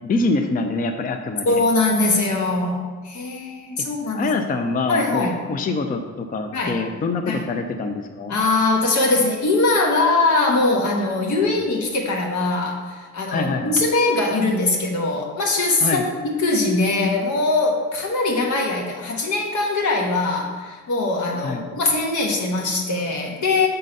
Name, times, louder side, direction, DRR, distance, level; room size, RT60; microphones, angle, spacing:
voice 1, 0.0-1.6 4.1-8.3 11.4-11.5 13.3-13.8 15.8-16.0 21.4-21.6, left 3 dB, 30° left, 6 dB, 0.5 m, -25 dB
voice 2, 1.4-4.3 4.9-5.4 6.5-6.8 7.2-7.4 8.3-16.0 16.3-23.7, left 2 dB, 70° left, 0 dB, 1.4 m, -21 dB
6.5 x 3.8 x 5.3 m, 1.4 s
cardioid pair, 90°, 30 cm